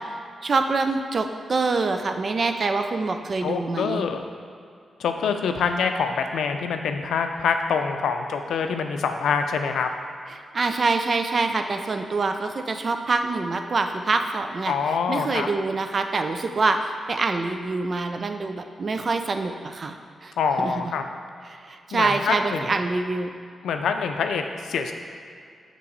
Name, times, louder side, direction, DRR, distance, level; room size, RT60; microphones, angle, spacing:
voice 1, 0.4-4.1 10.3-14.7 15.1-20.0 20.2-20.3 20.6-20.7 21.6-23.3, right 3 dB, 50° right, 6 dB, 0.5 m, -25 dB
voice 2, 3.4-4.2 5.0-9.9 14.7-15.5 20.4-21.0 21.9-22.7 23.6-24.9, left 6 dB, 85° left, 6 dB, 0.4 m, -25 dB
6.7 x 3.1 x 5.3 m, 2.3 s
cardioid pair, 55°, 0 cm